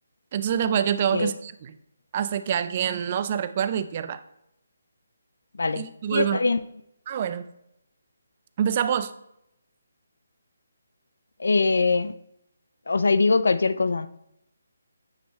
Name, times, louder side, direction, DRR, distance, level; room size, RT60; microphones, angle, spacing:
voice 1, 0.3-1.7 2.1-4.2 5.8-6.4 7.1-7.4 8.6-9.1, right 8 dB, 30° right, 12 dB, 0.3 m, -26 dB
voice 2, 6.1-6.6 11.4-12.1 12.9-14.1, left 3 dB, 80° left, 13 dB, 0.3 m, -22 dB
8.8 x 3.1 x 3.5 m, 0.81 s
hypercardioid pair, 170°, 0 cm